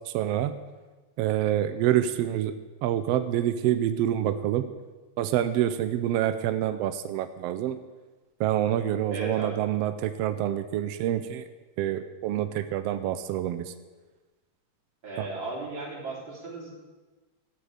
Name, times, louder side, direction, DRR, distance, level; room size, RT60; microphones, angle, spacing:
voice 1, 0.1-0.6 1.2-2.5 2.8-4.7 5.2-7.7 8.4-11.4 11.8-13.7 15.2-15.3, right 11 dB, 85° right, 10 dB, 1.4 m, -27 dB
voice 2, 9.1-9.6 15.0-16.9, right 2 dB, 40° right, -6 dB, 3.9 m, -36 dB
14.0 x 9.0 x 4.9 m, 1.3 s
omnidirectional pair, 3.3 m